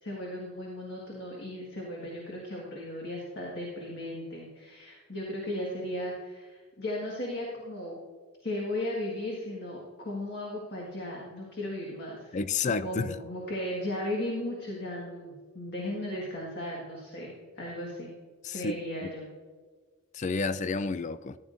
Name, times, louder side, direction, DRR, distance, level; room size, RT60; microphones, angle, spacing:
voice 1, 0.0-8.0 8.4-18.1 18.5-19.3, left 1 dB, 50° left, 1.8 m, -36 dB
voice 2, 12.3-13.2 18.4-18.8 19.0-19.1 20.1-21.4, left 4 dB, 35° left, 0.3 m, -30 dB
14.5 x 10.0 x 2.6 m
head